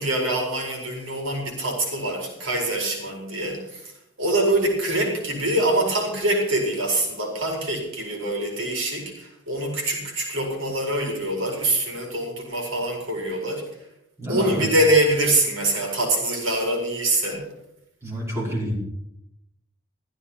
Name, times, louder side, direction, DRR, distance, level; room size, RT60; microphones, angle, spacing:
voice 1, 0.0-3.9 4.2-13.6 14.3-17.5, right 1 dB, 70° right, 1 dB, 4.6 m, -24 dB
voice 2, 14.2-14.7 18.0-18.8, equal, 15° right, -5 dB, 5.4 m, -28 dB
15.0 x 13.0 x 5.8 m, 0.79 s
head